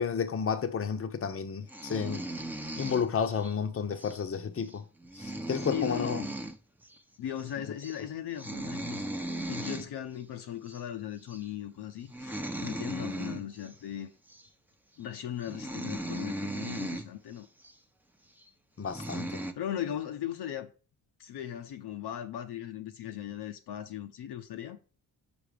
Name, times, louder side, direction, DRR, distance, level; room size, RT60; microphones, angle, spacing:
voice 1, 0.0-2.3 2.8-4.8 5.2-6.2 18.8-19.3, left 6 dB, 30° left, 0.8 m, -31 dB
sound 1, 1.7-3.5 4.0-4.2 4.6-4.7 5.0-6.6 6.8-7.0 7.3-7.5 7.8-8.0 8.3-9.9 10.7-10.8 11.3-11.5 12.0-13.7 14.3-14.5 15.1-15.2 15.4-17.1 17.6-17.7 18.4-18.5 18.8-19.5, right 1 dB, 5° right, 0.8 m, -37 dB
voice 2, 5.7-6.3 7.2-9.0 9.4-14.1 15.0-17.5 19.6-20.7 21.2-24.8, left 10 dB, 65° left, 0.8 m, -38 dB
5.1 x 4.8 x 5.1 m
supercardioid pair, 60°, 43 cm